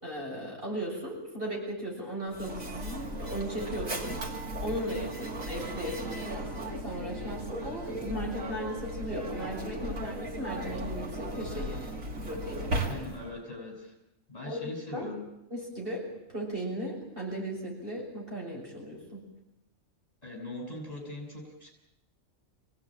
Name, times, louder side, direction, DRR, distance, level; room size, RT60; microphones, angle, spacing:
voice 1, 0.0-4.1 4.6-11.8 12.2-13.1 14.4-15.1 15.5-16.0 16.3-19.2, equal, 45° right, -2 dB, 6.7 m, -37 dB
Mechanisms, 2.3-13.4, right 1 dB, 90° right, 2.9 m, -36 dB
voice 2, 12.9-13.9 14.3-15.3 20.2-21.7, left 2 dB, 30° left, 0 dB, 7.4 m, -41 dB
25.5 x 17.5 x 8.9 m, 0.86 s
omnidirectional pair, 1.4 m